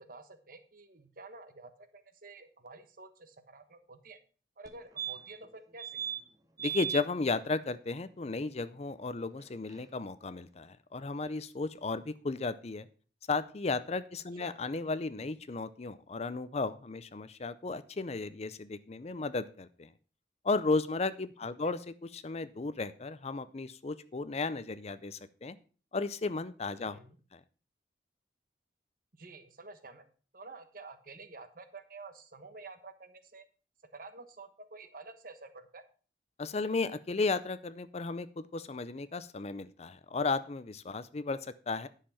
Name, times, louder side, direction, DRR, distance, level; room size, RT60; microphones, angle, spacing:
voice 1, 0.0-4.2 4.6-6.0 14.4-14.6 21.4-21.7 26.9-27.2 29.1-30.1 30.3-33.4 33.9-35.8, right 3 dB, 50° right, 9 dB, 1.2 m, -50 dB
sound 1, 4.7-4.8 5.0-5.5 5.8-6.2 6.6-7.0 9.4-9.5 9.7-9.8, right 9 dB, 20° right, 1.1 m, -36 dB
voice 2, 6.6-12.9 13.3-19.9 20.4-25.6 25.9-27.0 27.3-27.4 36.4-41.9, left 3 dB, 35° left, 14 dB, 0.5 m, -34 dB
10.5 x 6.6 x 5.6 m, 0.38 s
head